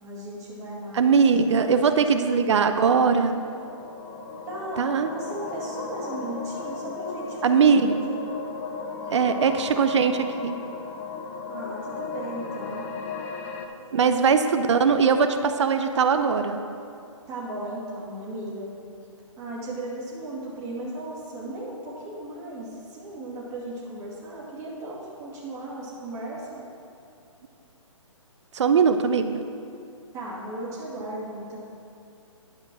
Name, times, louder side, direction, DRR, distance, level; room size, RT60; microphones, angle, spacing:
voice 1, 0.0-1.1 1.6-1.9 4.5-4.9 5.1-7.5 8.1-8.2 11.5-12.9 13.7-14.1 17.3-18.8 19.4-26.6 30.1-31.6, right 1 dB, 20° right, -7 dB, 2.1 m, -36 dB
voice 2, 0.9-3.4 4.8-5.1 7.4-8.0 9.1-10.5 13.9-16.6 28.5-29.3, right 5 dB, 60° right, 8 dB, 0.6 m, -20 dB
sound 1, 3.0-13.7, left 4 dB, 25° left, 0.6 m, -36 dB
10.0 x 5.2 x 6.1 m, 2.6 s
hypercardioid pair, 145°, 17 cm